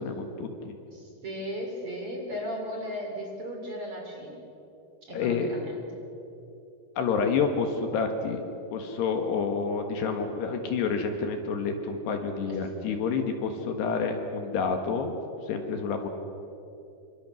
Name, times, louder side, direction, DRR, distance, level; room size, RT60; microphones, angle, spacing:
voice 1, 0.0-0.7 5.1-5.6 7.0-8.4 8.7-15.1 15.4-16.1, left 5 dB, 70° left, 5 dB, 3.4 m, -29 dB
voice 2, 0.9-4.5 5.0-5.8 12.5-13.0, equal, 35° right, 1 dB, 3.7 m, -36 dB
27.0 x 25.0 x 6.3 m, 2.9 s
omnidirectional pair, 5.4 m